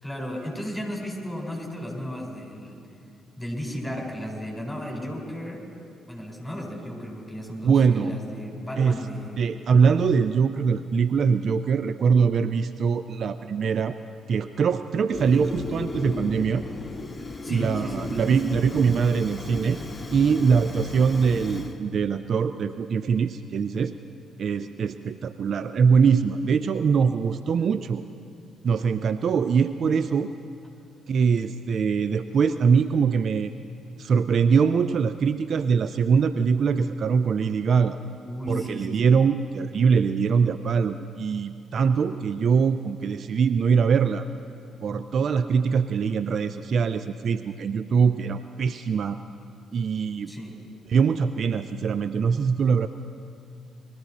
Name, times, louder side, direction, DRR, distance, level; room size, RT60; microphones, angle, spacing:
voice 1, 0.0-2.8 3.4-5.6 6.1-9.5 17.4-18.7 38.2-39.1 50.3-50.5, equal, 5° left, -1 dB, 4.3 m, -34 dB
voice 2, 7.6-8.1 8.8-9.0 9.4-14.0 14.3-16.6 17.5-19.8 20.1-23.9 24.4-28.0 28.6-30.3 31.1-33.5 34.0-38.0 38.5-44.3 44.8-49.2 49.7-50.3 50.9-52.9, right 6 dB, 50° right, 11 dB, 0.3 m, -22 dB
Fire, 15.1-21.8, left 2 dB, 25° left, 1.1 m, -35 dB
20.5 x 13.5 x 4.1 m, 2.4 s
figure-of-eight pair, 40°, 0 cm